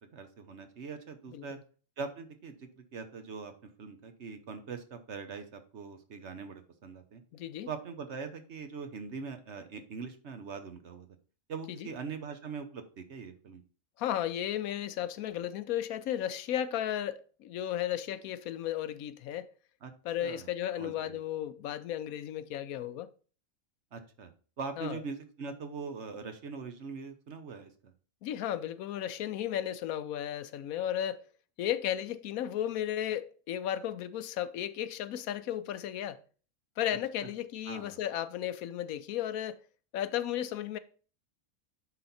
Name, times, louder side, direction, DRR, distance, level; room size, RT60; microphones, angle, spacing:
voice 1, 0.1-1.6 2.0-7.2 7.7-11.1 11.5-13.6 19.8-19.9 20.2-20.5 20.8-21.2 23.9-24.3 24.6-27.9 37.7-38.0, right 5 dB, 55° right, 1.2 m, -42 dB
voice 2, 1.3-1.6 7.3-7.7 11.7-11.9 14.0-19.5 20.0-23.1 24.8-25.0 28.2-31.3 31.6-36.2 36.8-39.6 39.9-40.8, left 11 dB, 85° left, 1.1 m, -34 dB
9.5 x 4.2 x 4.1 m
omnidirectional pair, 1.4 m